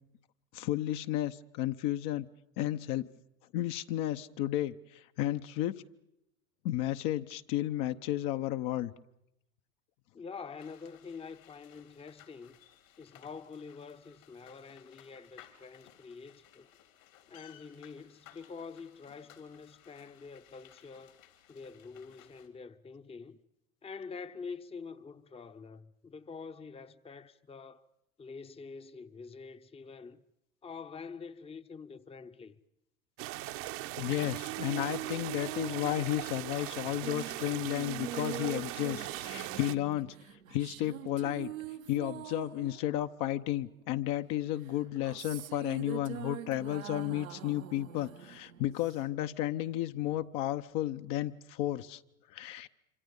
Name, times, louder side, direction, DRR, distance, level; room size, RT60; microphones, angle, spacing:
voice 1, 0.5-2.3 2.6-3.1 3.5-5.8 6.6-8.9 34.0-40.1 40.5-41.5 41.9-52.0 52.3-52.7, left 14 dB, 50° left, 0.9 m, -33 dB
voice 2, 10.1-12.6 13.0-16.7 17.3-21.2 21.5-23.4 23.8-27.8 28.2-30.2 30.6-32.5, left 5 dB, 15° left, 0.8 m, -46 dB
sound 1, 10.6-22.5, left 11 dB, 75° left, 3.6 m, -59 dB
sound 2, 33.2-39.8, right 16 dB, 55° right, 1.0 m, -40 dB
sound 3, 33.9-43.8 44.6-49.3, right 11 dB, 80° right, 1.2 m, -44 dB
26.5 x 25.5 x 5.4 m
hypercardioid pair, 80°, 41 cm